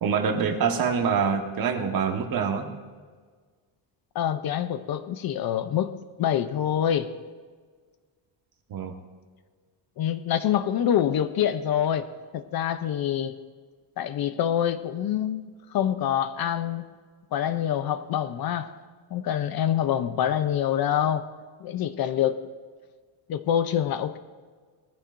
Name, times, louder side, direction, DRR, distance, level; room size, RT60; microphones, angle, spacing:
voice 1, 0.0-2.7 8.7-8.9, right 6 dB, 45° right, 4 dB, 1.4 m, -25 dB
voice 2, 4.1-7.1 10.0-12.1 12.3-13.3 14.0-16.8 17.3-18.7 19.1-21.2 21.6-22.4 23.3-24.2, left 10 dB, 50° left, 11 dB, 0.6 m, -26 dB
19.5 x 14.5 x 2.6 m, 1.5 s
cardioid pair, 170°, 48 cm